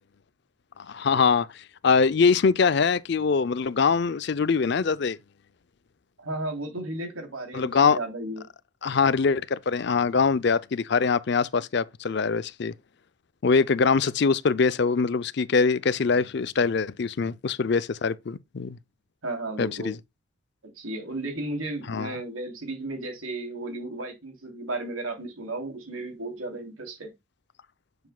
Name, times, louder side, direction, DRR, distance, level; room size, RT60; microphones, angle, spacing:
voice 1, 0.9-1.5 1.8-5.2 7.5-8.0 8.8-12.7 13.4-18.8 19.6-20.0 21.9-22.1, left 5 dB, 55° left, 0.5 m, -23 dB
voice 2, 6.2-8.4 19.2-19.9 20.8-27.1, right 2 dB, 85° right, 3.0 m, -34 dB
8.0 x 7.3 x 2.2 m
head